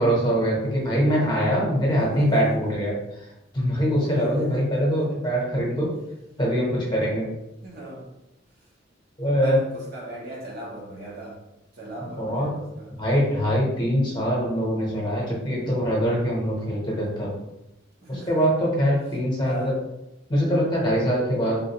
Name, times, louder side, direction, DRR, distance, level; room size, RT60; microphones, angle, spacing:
voice 1, 0.0-2.9 3.5-5.9 6.4-7.3 9.2-9.6 12.2-12.5 13.0-17.3 18.3-19.7 20.3-21.6, equal, 25° left, -4 dB, 1.0 m, -23 dB
voice 2, 1.9-2.5 4.1-4.7 5.1-5.2 7.6-8.1 9.4-11.4 11.7-12.9 18.0-18.6 19.4-19.8, right 1 dB, 55° right, -3 dB, 0.8 m, -38 dB
3.7 x 2.4 x 2.9 m, 0.90 s
head